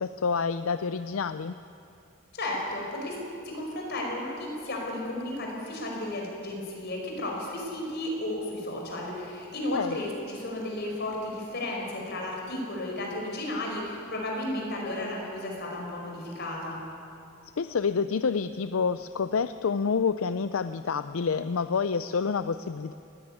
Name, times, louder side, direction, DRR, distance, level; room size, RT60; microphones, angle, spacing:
voice 1, 0.0-1.6 9.7-10.0 17.6-22.9, left 5 dB, 75° left, 12 dB, 0.5 m, -28 dB
voice 2, 2.3-3.2 3.4-16.8, left 1 dB, 50° left, -1 dB, 5.2 m, -33 dB
19.5 x 15.5 x 9.7 m, 2.6 s
head